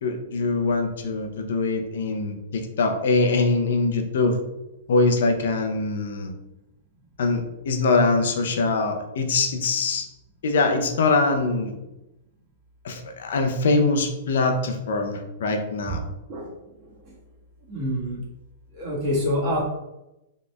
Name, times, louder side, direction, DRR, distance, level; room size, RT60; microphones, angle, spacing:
voice 1, 0.0-4.4 4.9-6.3 7.2-10.1 10.4-11.8 12.8-16.0, left 3 dB, 75° left, 5 dB, 0.5 m, -23 dB
voice 2, 16.3-17.2 17.7-18.2 18.7-19.6, left 1 dB, 35° right, -5 dB, 1.5 m, -27 dB
4.1 x 3.1 x 2.3 m, 0.94 s
hypercardioid pair, 160°, 0 cm